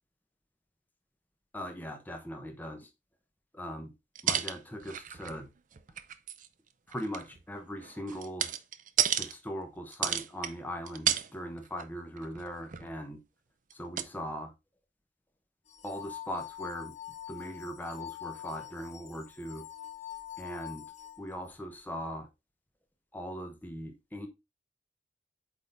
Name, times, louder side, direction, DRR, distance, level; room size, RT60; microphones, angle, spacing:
voice 1, 1.5-2.9 3.5-3.9 4.2-5.5 6.9-8.5 9.2-13.2 13.7-14.5 15.8-16.9 17.3-19.7 20.4-20.8 21.2-22.3 23.1-24.3, equal, 10° left, 0.9 m, -40 dB
sound 1, 4.2-5.5 5.7-6.5 6.9-9.3 9.9-10.5 10.9-11.3 11.6-11.8 12.2-12.9 13.7-13.8 14.0-14.1, right 9 dB, 45° right, 0.6 m, -32 dB
sound 2, 15.7-21.6, left 11 dB, 40° left, 1.0 m, -45 dB
8.2 x 3.8 x 3.9 m
head